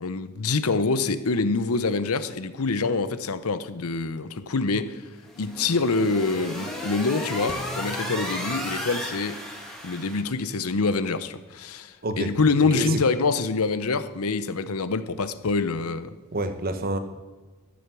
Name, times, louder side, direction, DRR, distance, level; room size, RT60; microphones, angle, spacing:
voice 1, 0.0-5.0 5.4-9.4 9.8-16.1, left 4 dB, 75° left, 0.8 m, -25 dB
sound 1, 5.2-10.2, equal, ahead, 2.2 m, -34 dB
Drum, 7.5-9.4, left 1 dB, 35° left, 0.7 m, -41 dB
voice 2, 16.3-17.0, right 2 dB, 45° right, 1.2 m, -27 dB
13.5 x 8.6 x 6.1 m
head